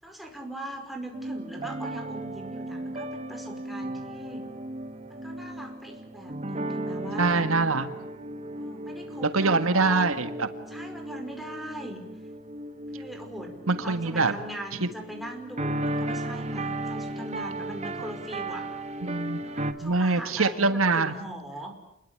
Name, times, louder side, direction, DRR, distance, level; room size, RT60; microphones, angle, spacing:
voice 1, 0.0-4.5 5.1-7.4 8.6-10.1 10.7-12.0 12.9-13.6 13.8-18.7 19.4-21.8, right 1 dB, ahead, 2 dB, 5.2 m, -40 dB
sound 1, 1.1-19.7, right 1 dB, 35° right, 1.8 m, -35 dB
voice 2, 7.2-7.9 9.3-10.5 13.7-14.3 14.8-14.9 19.0-19.4 19.8-21.1, right 3 dB, 75° right, 9 dB, 1.7 m, -24 dB
29.0 x 22.0 x 8.8 m, 0.80 s
head